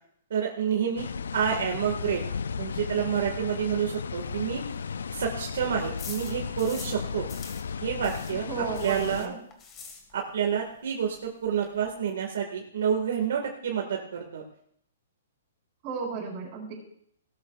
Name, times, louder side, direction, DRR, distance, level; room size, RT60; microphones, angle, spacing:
voice 1, 0.3-2.2 2.6-4.6 5.1-7.3 7.8-8.5 8.8-9.3 10.1-14.4, right 8 dB, 70° right, 0 dB, 1.9 m, -29 dB
sound 1, 1.0-9.3, left 6 dB, 85° left, 0.4 m, -35 dB
sound 2, 4.1-7.0 7.3-10.5 10.7-10.8 11.2-11.3 11.4-11.9, left 6 dB, 20° left, 1.9 m, -46 dB
voice 2, 8.3-9.4 15.8-16.7, right 5 dB, 35° right, -2 dB, 4.6 m, -34 dB
18.0 x 13.0 x 2.5 m, 0.68 s
hypercardioid pair, 155°, 0 cm